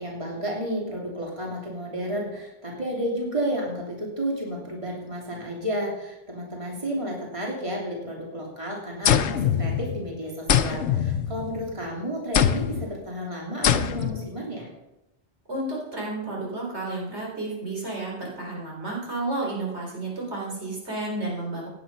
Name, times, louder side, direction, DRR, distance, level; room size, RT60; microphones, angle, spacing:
voice 1, 0.0-14.7, equal, 25° right, -2 dB, 3.2 m, -32 dB
sound 1, 9.0-10.1 10.5-11.8 12.3-12.9 13.6-14.3, left 8 dB, 75° left, 1.0 m, -23 dB
voice 2, 15.5-21.7, right 2 dB, 70° right, -2 dB, 4.1 m, -31 dB
16.5 x 9.7 x 5.5 m, 0.93 s
omnidirectional pair, 1.2 m